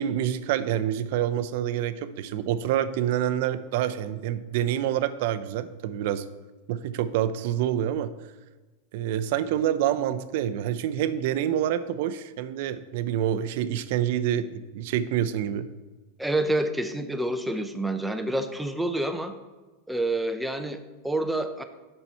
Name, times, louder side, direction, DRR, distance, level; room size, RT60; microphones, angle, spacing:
voice 1, 0.0-6.2 6.7-8.1 8.9-15.7, right 10 dB, 60° right, 13 dB, 0.5 m, -27 dB
voice 2, 16.2-19.3 19.9-21.6, right 1 dB, 5° right, 7 dB, 0.5 m, -28 dB
7.0 x 5.6 x 4.4 m, 1.2 s
supercardioid pair, 145°, 0 cm